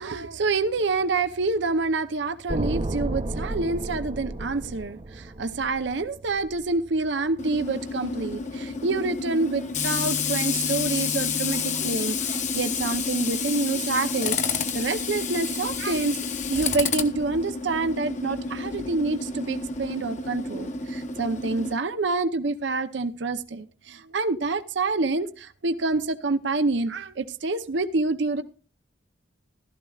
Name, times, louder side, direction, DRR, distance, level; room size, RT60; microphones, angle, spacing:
voice 1, 0.0-14.4 14.7-16.2 16.5-28.4, right 3 dB, 65° right, 0.7 m, -27 dB
sound 1, 2.5-6.6, right 1 dB, 30° right, 0.7 m, -32 dB
Tools, 7.4-21.7, left 5 dB, 40° left, 1.0 m, -29 dB
15.5 x 13.0 x 2.4 m
head